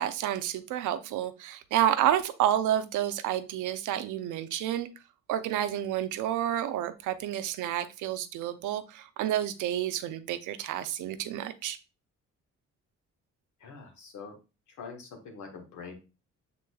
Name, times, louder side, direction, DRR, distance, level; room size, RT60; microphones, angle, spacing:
voice 1, 0.0-4.9 5.3-11.8, right 11 dB, 85° right, 11 dB, 0.6 m, -29 dB
voice 2, 13.6-14.3 14.8-16.0, left 5 dB, 75° left, 3 dB, 1.4 m, -44 dB
6.2 x 3.8 x 2.3 m, 0.29 s
cardioid pair, 90°, 30 cm